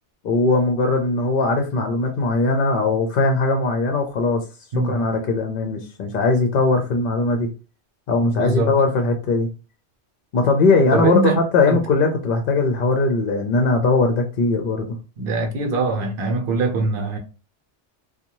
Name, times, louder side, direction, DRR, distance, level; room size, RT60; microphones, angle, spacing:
voice 1, 0.2-4.4 4.8-7.5 8.1-9.5 10.3-14.9, left 3 dB, 60° left, 0.6 m, -20 dB
voice 2, 8.2-8.7 10.9-11.4 11.7-11.8 15.2-17.2, right 3 dB, 55° right, 0.8 m, -22 dB
2.6 x 2.2 x 2.9 m
omnidirectional pair, 1.1 m